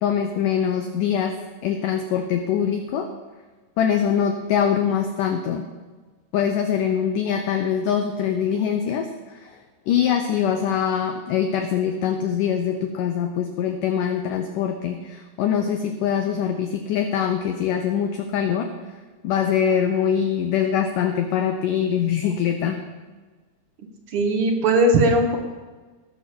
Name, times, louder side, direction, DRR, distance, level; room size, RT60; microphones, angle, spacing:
voice 1, 0.0-3.1 3.8-5.7 6.3-9.6 9.9-18.7 19.2-22.8, left 8 dB, 80° left, 6 dB, 1.9 m, -23 dB
voice 2, 24.1-25.4, right 1 dB, 65° right, 2 dB, 1.4 m, -18 dB
19.0 x 6.4 x 6.9 m, 1.4 s
omnidirectional pair, 4.7 m